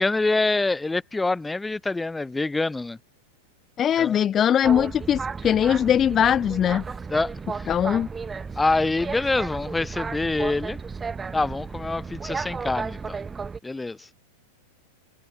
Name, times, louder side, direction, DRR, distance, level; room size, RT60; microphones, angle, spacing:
voice 1, 0.0-3.0 4.0-4.2 7.1-7.7 8.6-10.8 11.3-13.2 13.6-14.1, left 3 dB, 10° left, 2.1 m, -25 dB
voice 2, 3.8-6.8 7.7-8.1, left 9 dB, 30° left, 0.9 m, -21 dB
Boat Water vehicle, 4.6-13.6, right 5 dB, 15° right, 1.1 m, -34 dB
hypercardioid pair, 105°, 0 cm